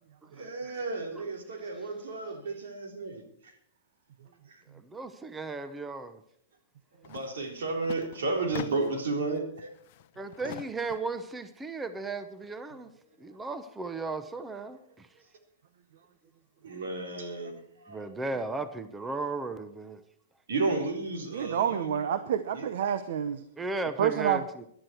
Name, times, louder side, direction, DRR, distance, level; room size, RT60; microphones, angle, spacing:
voice 1, 0.3-3.6 4.5-4.6 7.0-9.7 10.4-10.5 16.6-18.1 20.5-21.9 22.5-22.6, right 3 dB, 85° right, 4 dB, 3.8 m, -33 dB
voice 2, 4.9-6.2 10.2-12.9 13.2-15.1 17.9-20.0 23.6-24.6, right 3 dB, 10° right, 11 dB, 0.8 m, -35 dB
sound 1, 7.0-7.3 7.6-9.1 9.6-11.2, left 14 dB, 50° left, 0.6 m, -44 dB
voice 3, 21.3-23.4 24.0-24.4, right 9 dB, 65° right, 11 dB, 1.0 m, -28 dB
17.0 x 11.5 x 4.6 m, 0.68 s
hypercardioid pair, 150°, 0 cm